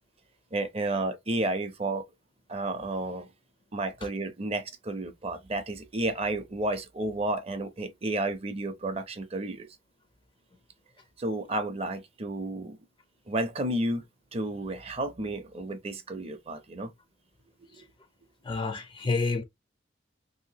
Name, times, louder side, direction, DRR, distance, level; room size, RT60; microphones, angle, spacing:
voice 1, 0.5-2.0 2.5-3.3 3.7-9.7 11.2-12.8 13.3-14.0 14.3-16.9 17.7-17.8 19.0-19.1, right 2 dB, 30° right, 0.5 m, -31 dB
voice 2, 18.4-19.4, left 3 dB, 25° left, 0.4 m, -28 dB
3.3 x 2.7 x 2.7 m
head